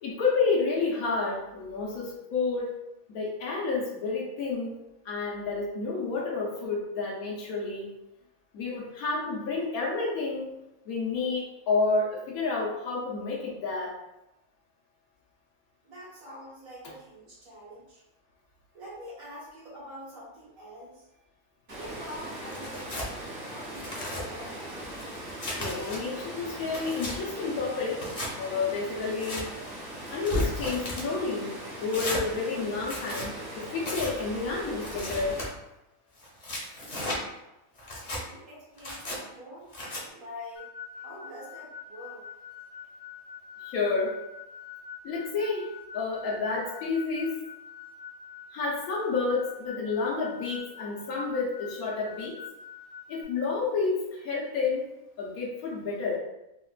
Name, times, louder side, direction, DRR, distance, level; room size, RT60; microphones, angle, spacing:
voice 1, 0.0-2.7 3.1-4.8 5.0-7.9 8.5-10.5 10.9-13.9 25.6-28.1 28.4-29.5 30.1-31.5 31.8-35.4 43.6-44.2 45.0-47.4 48.5-52.4 53.1-54.9 55.2-56.2, left 4 dB, 90° left, -3 dB, 1.1 m, -30 dB
voice 2, 15.8-18.0 18.7-21.2 21.7-23.1 23.5-24.6 38.0-39.7 40.1-40.7 40.9-42.2, equal, 75° right, -8 dB, 1.8 m, -45 dB
Water, 21.7-35.5, right 1 dB, 45° right, 0.8 m, -40 dB
Tearing, 22.5-23.1 23.6-24.2 24.8-26.0 26.5-27.2 27.9-28.3 29.0-29.4 30.0-31.1 31.9-32.2 32.8-33.3 33.8-34.1 34.8-35.5 36.2-37.2 37.8-38.2 38.8-39.2 39.7-40.0, left 1 dB, 40° left, 0.6 m, -35 dB
sound 1, 40.6-53.2, left 7 dB, 70° left, 1.0 m, -45 dB
3.9 x 2.1 x 2.3 m, 0.92 s
omnidirectional pair, 1.5 m